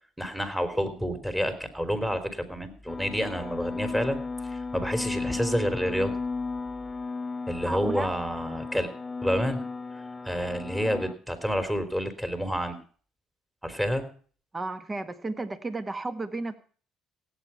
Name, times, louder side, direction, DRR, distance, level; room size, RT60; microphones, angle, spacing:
voice 1, 0.2-6.1 7.5-8.9 9.2-9.6 10.3-12.8 13.6-14.1, equal, 5° right, 9 dB, 3.5 m, -29 dB
sound 1, 2.9-11.1, left 4 dB, 20° left, 0.9 m, -35 dB
voice 2, 7.6-8.1 14.5-16.6, right 2 dB, 20° right, 11 dB, 1.5 m, -33 dB
17.0 x 9.0 x 5.8 m, 0.43 s
supercardioid pair, 80°, 0 cm